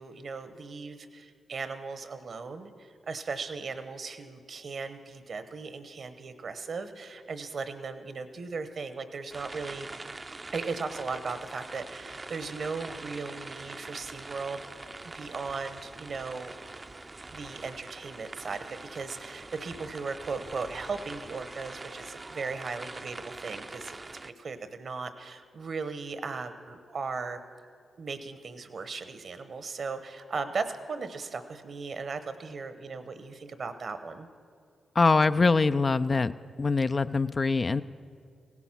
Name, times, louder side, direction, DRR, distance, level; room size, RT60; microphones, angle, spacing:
voice 1, 0.0-9.9 10.5-14.7 15.0-16.5 17.3-27.4 28.0-34.3, right 4 dB, 60° right, 10 dB, 1.0 m, -37 dB
sound 1, 9.3-24.3, right 2 dB, 30° right, 0.6 m, -44 dB
voice 2, 35.0-36.3 36.6-37.8, left 4 dB, 40° left, 12 dB, 0.4 m, -23 dB
16.5 x 11.0 x 6.0 m, 2.2 s
supercardioid pair, 45°, 0 cm